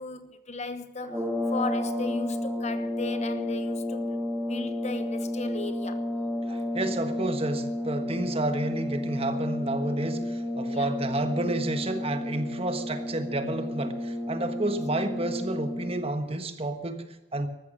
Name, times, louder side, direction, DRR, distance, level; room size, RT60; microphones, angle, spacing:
voice 1, 0.0-4.2 4.5-6.1 10.7-10.9, left 3 dB, 40° left, 1.1 m, -36 dB
sound 1, 1.0-16.2, left 1 dB, 10° right, 2.5 m, -31 dB
voice 2, 6.5-17.5, right 2 dB, 35° right, 1.4 m, -30 dB
14.5 x 13.0 x 7.4 m
head